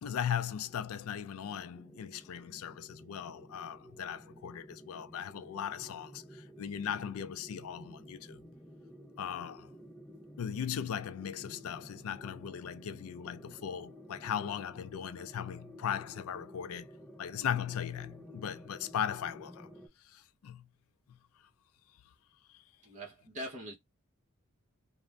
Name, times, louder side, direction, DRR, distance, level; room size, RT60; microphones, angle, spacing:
voice 1, 0.0-8.4 9.2-9.7 10.4-16.9 17.2-19.7 20.0-20.7 21.1-21.2 22.5-22.6, left 8 dB, 75° left, 0.3 m, -38 dB
sound 1, 0.6-19.9, equal, 5° left, 0.5 m, -53 dB
voice 2, 22.8-23.7, equal, 35° right, 0.7 m, -42 dB
2.4 x 2.0 x 3.2 m
head